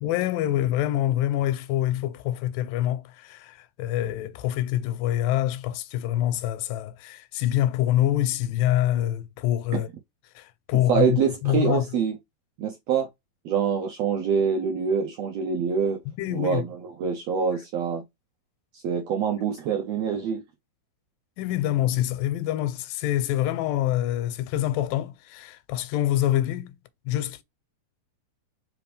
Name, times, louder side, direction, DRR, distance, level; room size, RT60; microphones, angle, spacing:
voice 1, 0.0-9.9 10.4-11.8 16.2-16.6 21.4-26.8 27.1-27.4, left 13 dB, 85° left, 2.2 m, -26 dB
voice 2, 10.9-12.1 12.6-13.1 13.4-16.0 16.3-18.0 18.7-20.4, right 6 dB, 75° right, 1.5 m, -25 dB
5.1 x 3.1 x 3.3 m
omnidirectional pair, 3.9 m